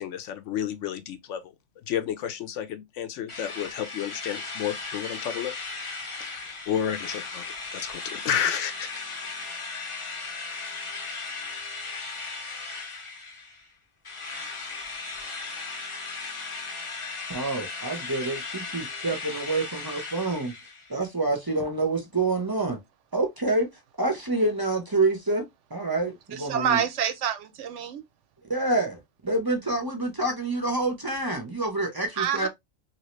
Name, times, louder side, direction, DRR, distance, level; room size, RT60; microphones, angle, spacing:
voice 1, 0.0-1.5 1.9-5.5 6.2-6.3 6.7-8.9, left 9 dB, 75° left, 0.9 m, -31 dB
Drill, 3.3-13.7 14.0-20.9, left 4 dB, 35° left, 0.6 m, -37 dB
voice 2, 17.3-20.5 20.9-22.8 23.1-23.7 24.0-26.8 28.5-32.5, right 2 dB, 25° right, 0.6 m, -27 dB
voice 3, 26.3-28.0 32.2-32.5, right 8 dB, 75° right, 0.9 m, -27 dB
2.9 x 2.8 x 3.0 m
omnidirectional pair, 1.3 m